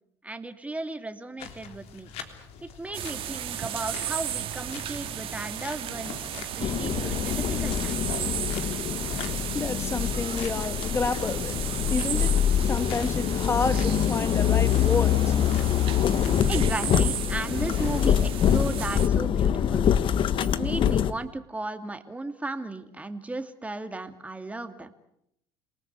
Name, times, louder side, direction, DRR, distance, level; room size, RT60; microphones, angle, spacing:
voice 1, 0.2-2.1 2.8-8.3 16.5-19.9 20.4-24.9, right 2 dB, 10° right, 2.4 m, -35 dB
sound 1, 1.4-19.0, left 7 dB, 65° left, 3.3 m, -44 dB
sound 2, 2.9-19.1, right 11 dB, 55° right, 1.8 m, -35 dB
sound 3, 6.6-21.1, left 9 dB, 45° left, 1.3 m, -25 dB
voice 2, 8.8-16.0, left 4 dB, 25° left, 1.8 m, -31 dB
28.0 x 19.0 x 8.3 m
supercardioid pair, 85°, 11 cm